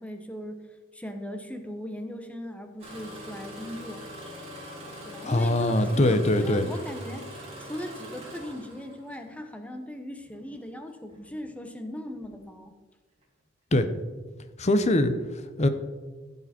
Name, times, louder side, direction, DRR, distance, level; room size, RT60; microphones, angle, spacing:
voice 1, 0.0-4.0 5.0-12.7, equal, 5° left, 6 dB, 1.0 m, -39 dB
Engine starting, 2.8-9.2 10.2-10.5 11.1-11.5 12.1-12.3, equal, 30° right, 3.7 m, -43 dB
voice 2, 5.2-6.7 13.7-13.9 14.6-15.7, left 1 dB, 35° left, 10 dB, 0.8 m, -23 dB
15.0 x 6.8 x 4.3 m, 1.3 s
head